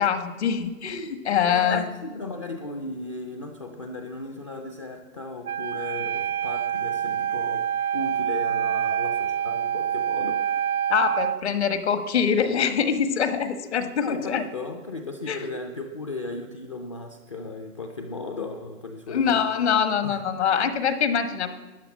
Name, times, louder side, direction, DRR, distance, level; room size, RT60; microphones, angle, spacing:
voice 1, 0.0-1.9 10.9-14.4 15.3-15.5 19.1-21.5, left 7 dB, 50° left, 10 dB, 1.4 m, -24 dB
voice 2, 1.4-10.5 14.0-19.4 20.0-20.2, left 2 dB, 20° left, 4 dB, 0.5 m, -36 dB
Wind instrument woodwind instrument, 5.4-11.4, right 9 dB, 85° right, 0.6 m, -26 dB
13.0 x 9.5 x 7.3 m, 1.2 s
hypercardioid pair, 155°, 43 cm